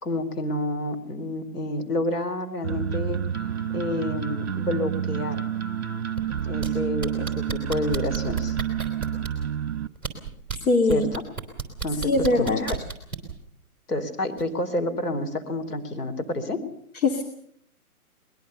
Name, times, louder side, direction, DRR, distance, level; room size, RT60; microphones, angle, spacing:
voice 1, 0.0-3.2 3.7-5.4 6.4-8.6 10.9-11.2 11.8-12.8 13.9-16.6, left 1 dB, 80° left, 8 dB, 4.0 m, -29 dB
sound 1, 2.6-9.9, right 9 dB, 45° right, 1.1 m, -29 dB
sound 2, 6.2-6.7 7.0-9.5 10.0-10.6 10.9-13.3 14.4-14.5, right 6 dB, 5° left, 3.6 m, -31 dB
voice 2, 10.7-11.1 12.0-12.6 17.0-17.2, left 2 dB, 65° left, 3 dB, 2.7 m, -21 dB
23.0 x 21.0 x 6.9 m, 0.66 s
hypercardioid pair, 165°, 45 cm